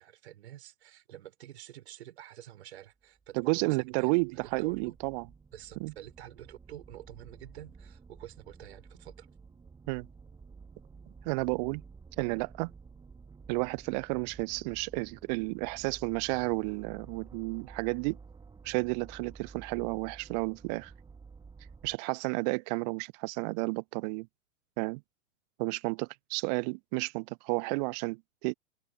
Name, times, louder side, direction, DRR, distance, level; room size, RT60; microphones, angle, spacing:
voice 1, 0.0-5.0 5.5-9.3, right 12 dB, 55° right, 4.0 m, -48 dB
sound 1, 3.2-22.0, right 5 dB, 10° right, 3.0 m, -52 dB
voice 2, 3.3-5.2 5.8-5.9 9.9-10.1 11.2-11.8 12.2-12.7 13.5-18.2 18.6-20.9 21.8-24.3 24.8-25.0 25.6-28.5, right 30 dB, 35° right, 0.8 m, -32 dB
open air
figure-of-eight pair, 100°, 39 cm